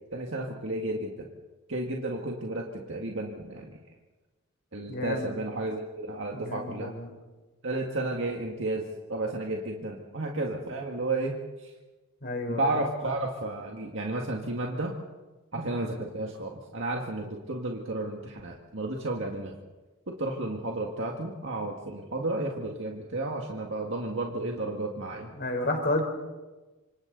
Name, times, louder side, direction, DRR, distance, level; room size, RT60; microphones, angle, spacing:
voice 1, 0.1-1.3 1.7-3.8 4.7-6.9 7.6-8.8 9.1-11.7 12.5-14.9 15.5-19.6 20.1-25.3, right 2 dB, 60° right, 0 dB, 1.9 m, -32 dB
voice 2, 4.9-5.3 6.3-7.1 12.2-12.7 25.3-26.0, left 1 dB, 50° left, 4 dB, 3.8 m, -31 dB
27.0 x 26.5 x 4.0 m, 1.2 s
head